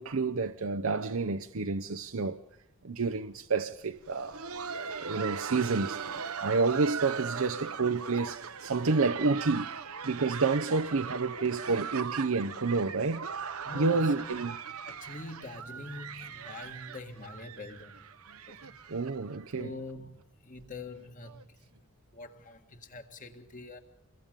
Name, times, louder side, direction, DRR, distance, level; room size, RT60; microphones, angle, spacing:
voice 1, 0.0-2.4 2.8-4.4 5.0-6.0 6.4-9.7 10.0-13.3 13.7-14.6 18.9-19.8, right 4 dB, 75° right, 0.7 m, -29 dB
Laughter, 3.9-19.6 19.9-20.0 20.6-20.7 21.2-21.4 22.5-22.6, right 6 dB, 90° right, 1.1 m, -40 dB
voice 2, 13.6-14.3 14.8-18.1 18.5-18.7 19.5-21.7 22.1-23.8, left 2 dB, 35° left, 2.0 m, -45 dB
28.5 x 22.5 x 5.2 m
head